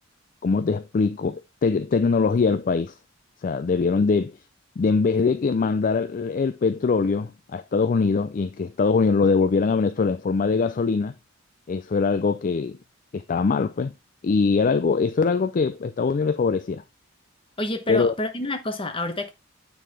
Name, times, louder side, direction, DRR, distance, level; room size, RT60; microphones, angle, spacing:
voice 1, 0.4-2.9 3.4-4.4 4.8-11.1 11.7-12.8 13.1-13.9 14.2-16.8 17.9-18.1, left 4 dB, 40° left, 0.4 m, -22 dB
voice 2, 17.6-19.3, left 1 dB, 25° left, 1.1 m, -28 dB
9.2 x 4.0 x 3.4 m
head